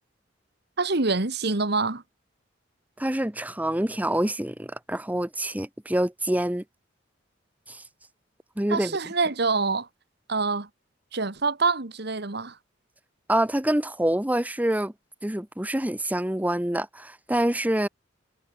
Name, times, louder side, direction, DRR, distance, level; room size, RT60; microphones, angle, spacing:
voice 1, 0.8-2.0 8.7-9.9 10.3-10.7 11.1-12.6, right 3 dB, 60° right, 1.7 m, -25 dB
voice 2, 3.0-6.6 7.7-7.8 8.6-9.0 13.3-14.9 15.2-17.9, right 1 dB, 10° right, 1.0 m, -26 dB
head